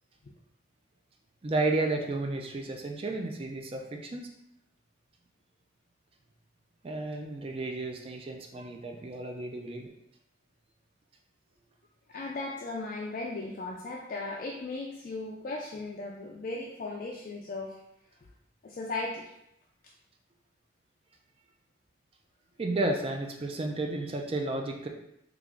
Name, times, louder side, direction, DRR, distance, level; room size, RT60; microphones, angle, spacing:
voice 1, 1.4-4.3 6.8-9.9 22.6-24.9, right 2 dB, 30° right, 2 dB, 0.4 m, -32 dB
voice 2, 12.1-17.8 18.6-19.3, left 2 dB, 45° left, -2 dB, 0.3 m, -37 dB
3.2 x 2.4 x 3.6 m, 0.80 s
head